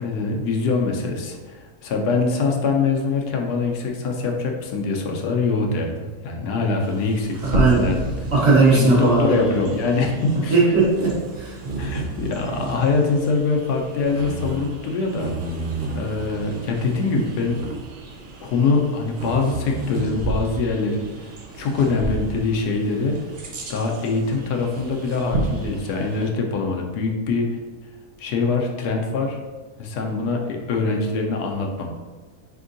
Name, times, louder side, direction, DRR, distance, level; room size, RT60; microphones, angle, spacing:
voice 1, 0.0-5.9 6.2-8.1 8.7-10.6 11.8-15.3 15.9-17.6 18.4-21.3 21.6-23.1 23.7-27.6 28.2-29.4 29.8-31.9, left 4 dB, 85° left, 1 dB, 1.2 m, -23 dB
Bird vocalization bird call bird song, 6.8-26.3, right 2 dB, 90° right, 0.4 m, -31 dB
voice 2, 7.4-7.9 8.3-9.4 10.5-11.6, right 3 dB, 50° right, -5 dB, 1.1 m, -17 dB
4.5 x 3.5 x 2.5 m, 1.3 s
omnidirectional pair, 1.7 m